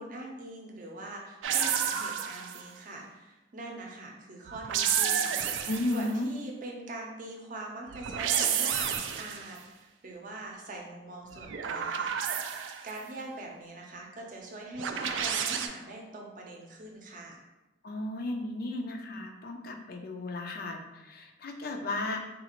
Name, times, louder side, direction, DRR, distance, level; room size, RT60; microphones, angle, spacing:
voice 1, 0.0-5.6 5.9-8.9 9.2-12.2 12.8-17.4, right 2 dB, 45° right, 0 dB, 0.6 m, -43 dB
sound 1, 1.4-2.7 4.5-6.1 7.9-9.5 11.3-13.0 14.8-15.7, right 8 dB, 90° right, 0.3 m, -30 dB
voice 2, 5.7-6.3 17.8-22.2, left 2 dB, 55° left, 4 dB, 0.4 m, -34 dB
3.9 x 2.4 x 2.9 m, 1.0 s
head